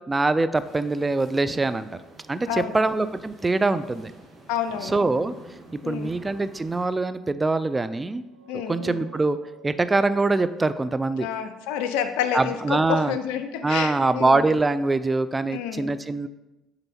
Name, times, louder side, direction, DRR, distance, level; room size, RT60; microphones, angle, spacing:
voice 1, 0.1-1.9 2.3-4.1 4.8-5.3 5.7-8.2 8.7-9.4 9.6-11.3 12.3-13.1 13.6-16.3, right 3 dB, 20° right, 12 dB, 0.3 m, -23 dB
sound 1, 0.6-6.8, right 2 dB, 50° right, 1.5 m, -49 dB
voice 2, 2.5-2.8 4.5-5.0 5.8-6.1 8.5-9.0 11.2-14.5 15.5-15.9, left 9 dB, 80° left, 9 dB, 0.5 m, -29 dB
sound 2, 8.1-11.7, right 7 dB, 90° right, 1.4 m, -50 dB
6.8 x 4.1 x 4.2 m, 1.0 s
hypercardioid pair, 60°, 0 cm